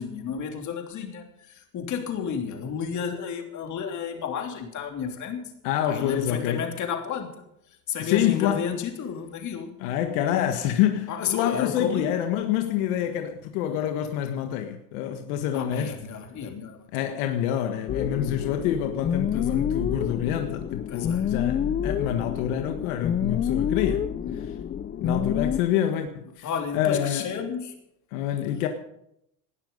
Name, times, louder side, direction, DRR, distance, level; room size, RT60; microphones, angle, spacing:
voice 1, 0.0-5.5 5.8-7.3 7.9-9.7 11.1-12.1 15.5-17.1 19.3-19.7 20.9-21.3 24.2-24.5 26.4-27.7, left 7 dB, 40° left, 3.2 m, -32 dB
voice 2, 5.6-6.7 8.0-8.6 9.8-15.9 16.9-24.1 25.0-26.5 26.7-27.3 28.1-28.7, left 10 dB, 75° left, 1.7 m, -27 dB
sound 1, 17.9-25.6, left 8 dB, 20° left, 0.5 m, -28 dB
19.5 x 11.5 x 5.4 m
supercardioid pair, 125°, 43 cm